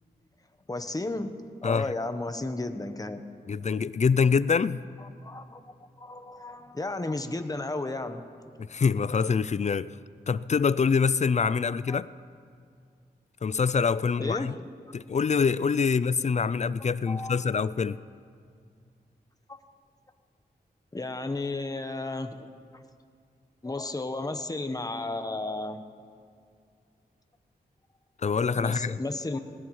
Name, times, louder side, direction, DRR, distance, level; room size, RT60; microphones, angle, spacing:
voice 1, 0.7-1.3 1.6-3.2 5.2-8.2 11.9-12.0 14.2-14.6 17.1-17.6 19.5-19.6 20.9-22.5 23.6-25.8 28.5-29.4, left 2 dB, 20° left, 7 dB, 1.0 m, -33 dB
voice 2, 1.6-1.9 3.5-4.8 8.6-9.9 10.3-12.1 13.4-14.5 14.9-18.0 28.2-29.0, left 5 dB, 45° left, 17 dB, 0.4 m, -25 dB
20.5 x 19.0 x 3.2 m, 2.3 s
cardioid pair, 70°, 17 cm